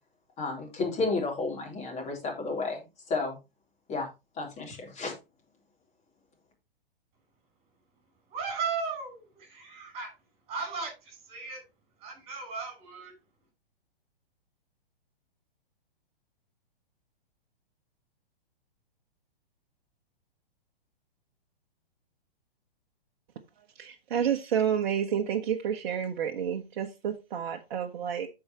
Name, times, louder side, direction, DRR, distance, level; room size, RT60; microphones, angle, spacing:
voice 1, 0.4-2.8 3.1-3.4 3.9-4.1 4.4-5.1, left 3 dB, 20° left, 3.4 m, -31 dB
voice 2, 8.3-10.1 10.5-11.6 12.0-13.1, right 5 dB, 20° right, 5.4 m, -36 dB
voice 3, 23.6-28.3, right 8 dB, 55° right, 1.1 m, -30 dB
14.0 x 4.9 x 2.9 m
hypercardioid pair, 120°, 29 cm